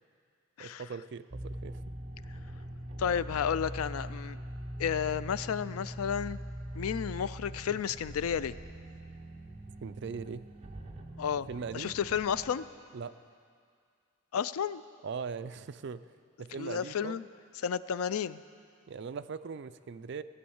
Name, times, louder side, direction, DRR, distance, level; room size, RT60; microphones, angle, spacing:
voice 1, 0.6-1.9 9.8-10.5 11.3-12.0 12.9-13.1 15.0-16.0 16.4-17.2 18.9-20.2, right 5 dB, 55° right, 13 dB, 0.4 m, -40 dB
sound 1, 1.3-12.5, right 1 dB, 30° right, 0.9 m, -42 dB
voice 2, 3.0-4.4 4.8-6.4 6.7-8.5 11.2-11.5 11.7-12.7 14.3-14.8 16.6-17.3 17.6-18.4, left 8 dB, 85° left, 16 dB, 0.4 m, -32 dB
16.0 x 8.7 x 7.1 m, 2.2 s
head